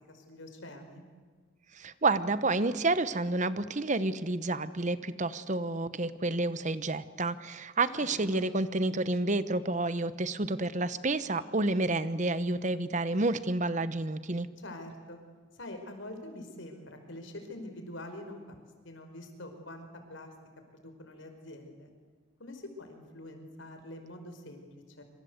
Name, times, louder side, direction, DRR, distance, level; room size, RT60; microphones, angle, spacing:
voice 1, 0.1-1.0 7.8-8.5 14.6-15.2 15.5-18.6 18.8-20.3 20.7-21.9 22.4-25.0, left 1 dB, 70° left, 6 dB, 5.0 m, -45 dB
voice 2, 1.8-14.5, right 2 dB, 40° right, 14 dB, 1.0 m, -29 dB
26.5 x 26.0 x 8.1 m, 1.5 s
head